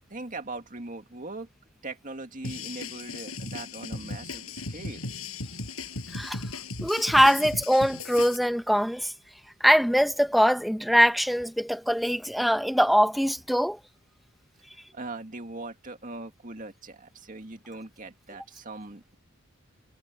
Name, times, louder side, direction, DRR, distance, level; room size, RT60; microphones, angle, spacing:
voice 1, 0.1-1.5 1.8-5.1 14.9-19.2, right 2 dB, 40° right, 2.3 m, -40 dB
sound 1, 2.4-8.4, left 3 dB, 85° left, 5.7 m, -37 dB
voice 2, 6.1-6.4 6.8-9.1 9.6-13.8, equal, ahead, 1.0 m, -22 dB
head